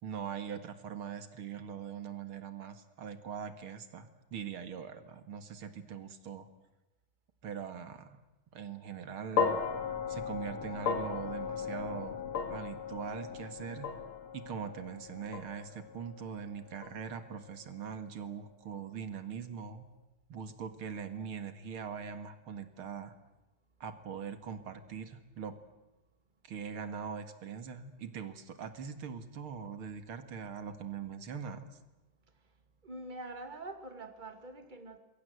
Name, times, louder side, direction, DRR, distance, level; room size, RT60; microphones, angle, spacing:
voice 1, 0.0-6.5 7.4-8.2 8.5-9.6 10.1-12.2 12.5-13.9 14.3-19.9 20.3-23.1 23.8-25.6 26.4-31.8, right 7 dB, 80° right, 10 dB, 2.7 m, -42 dB
sound 1, 9.4-17.7, left 6 dB, 80° left, 3.4 m, -37 dB
voice 2, 32.8-35.0, right 2 dB, 20° right, 8 dB, 2.4 m, -45 dB
27.0 x 23.0 x 8.1 m, 1.0 s
omnidirectional pair, 2.3 m